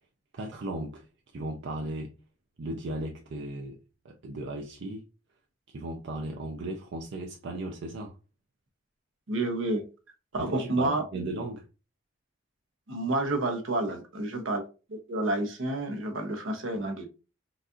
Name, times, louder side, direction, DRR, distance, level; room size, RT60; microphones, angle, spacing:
voice 1, 0.3-1.0 1.3-2.1 2.6-3.8 4.0-5.0 5.7-8.1 10.4-11.6, right 1 dB, 60° right, 1 dB, 0.5 m, -36 dB
voice 2, 9.3-9.8 10.3-11.0 12.9-17.1, right 2 dB, 85° right, 5 dB, 0.9 m, -30 dB
4.0 x 2.5 x 2.3 m, 0.32 s
head